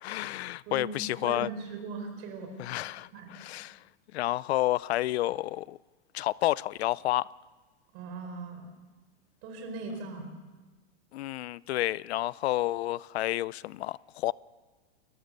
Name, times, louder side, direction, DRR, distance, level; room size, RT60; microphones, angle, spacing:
voice 1, 0.0-1.5 2.6-3.8 4.1-5.8 6.1-7.3 11.1-14.3, left 16 dB, 70° left, 0.5 m, -30 dB
voice 2, 0.7-2.5 3.1-3.3 7.9-8.7 9.4-10.3, right 3 dB, 40° right, 4.6 m, -39 dB
28.5 x 15.0 x 6.6 m
supercardioid pair, 160°, 33 cm